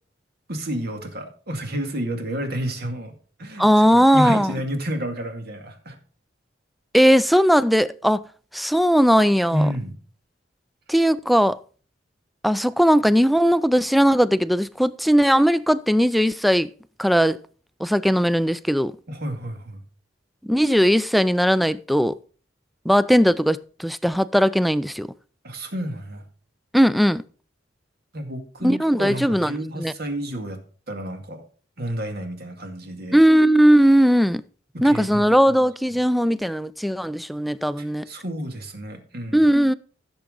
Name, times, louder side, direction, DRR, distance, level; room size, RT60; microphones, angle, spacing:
voice 1, 0.5-3.1 3.4-3.7 3.9-6.0 9.5-9.9 19.1-19.8 25.4-26.2 28.1-30.6 30.9-31.4 31.8-33.2 34.7-35.3 37.8-39.5, equal, 55° right, 2.2 m, -30 dB
voice 2, 3.6-4.5 6.9-8.2 8.5-9.7 10.9-11.6 12.4-16.7 17.0-17.4 17.8-18.9 20.4-22.2 22.9-25.1 26.7-27.2 28.6-29.9 33.1-34.4 34.8-38.1 39.3-39.7, equal, ahead, 0.4 m, -18 dB
15.0 x 7.2 x 3.9 m
head